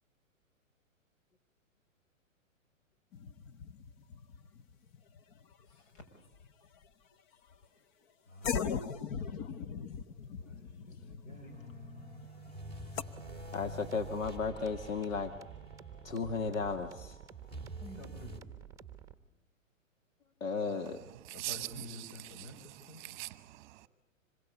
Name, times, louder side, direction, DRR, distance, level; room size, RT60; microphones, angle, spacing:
sound 1, 3.1-6.0 6.3-6.8 7.5-7.6 8.4-13.0, left 7 dB, 35° left, 1.0 m, -40 dB
voice 1, 5.6-6.1 7.6-7.9 8.3-12.3 17.8-18.4 21.3-23.0, left 2 dB, 55° left, 6 dB, 6.7 m, -51 dB
sound 2, 11.3-18.4, right 1 dB, 15° left, 2.5 m, -48 dB
sound 3, 13.2-19.1, right 9 dB, 10° right, 1.3 m, -51 dB
voice 2, 13.5-15.3 16.0-17.2 20.4-21.0, left 5 dB, 75° left, 7 dB, 2.0 m, -34 dB
voice 3, 21.2-22.5 23.0-23.9, right 20 dB, 35° right, 14 dB, 1.2 m, -42 dB
26.5 x 22.0 x 8.4 m, 0.89 s
hypercardioid pair, 135°, 40 cm